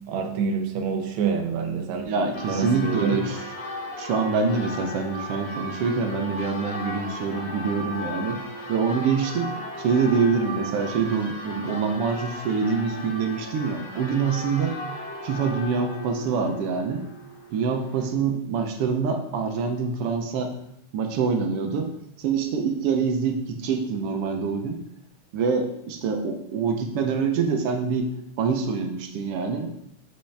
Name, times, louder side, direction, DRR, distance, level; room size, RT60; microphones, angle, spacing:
voice 1, 0.1-2.0 2.5-3.2, right 6 dB, 85° right, 3 dB, 1.1 m, -26 dB
voice 2, 2.0-3.4 4.0-8.4 8.7-14.8 15.2-17.0 17.5-20.5 20.9-21.9 22.2-24.8 25.3-28.1 28.4-29.9, right 5 dB, 70° right, 4 dB, 1.4 m, -25 dB
Church bell, 2.3-18.1, equal, 65° left, 2.6 m, -36 dB
7.8 x 5.6 x 3.3 m, 0.74 s
omnidirectional pair, 3.4 m